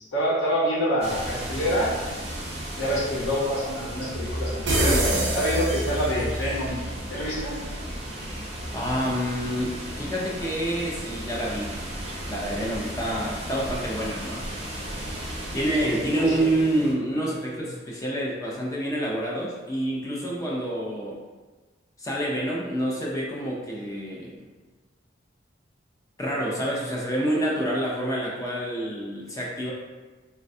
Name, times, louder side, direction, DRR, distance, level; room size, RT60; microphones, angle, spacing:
voice 1, 0.1-1.9 2.8-5.0 5.3-6.8 7.1-7.6 15.8-16.3, equal, 70° left, -6 dB, 0.8 m, -26 dB
sound 1, 1.0-16.9, equal, 35° right, 0.5 m, -34 dB
sound 2, 4.7-6.5, right 1 dB, 75° right, 0.6 m, -25 dB
voice 2, 8.7-11.8 12.2-14.4 15.5-21.2 22.0-24.4 26.2-29.7, right 1 dB, 15° left, -3 dB, 0.4 m, -28 dB
3.2 x 2.2 x 2.6 m, 1.3 s
head